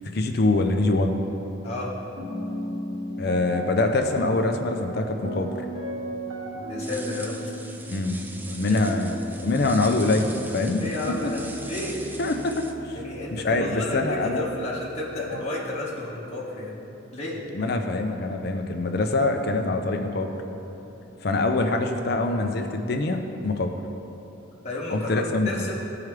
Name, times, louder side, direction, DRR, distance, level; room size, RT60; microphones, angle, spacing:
voice 1, 0.1-1.2 3.2-5.5 7.9-10.9 11.2-11.3 12.2-13.0 13.3-14.5 17.5-20.3 21.2-23.7 24.9-25.5, left 2 dB, 50° left, 5 dB, 0.5 m, -24 dB
voice 2, 1.6-1.9 6.7-7.4 8.7-8.8 10.8-12.2 12.5-12.6 12.9-16.8 17.1-17.7 24.6-25.7, left 2 dB, 35° left, -6 dB, 1.4 m, -32 dB
sound 1, 2.1-15.4, right 1 dB, 85° right, 1.2 m, -37 dB
sound 2, 6.8-12.7, right 2 dB, 10° right, 0.3 m, -41 dB
14.0 x 4.7 x 3.3 m, 3.0 s
head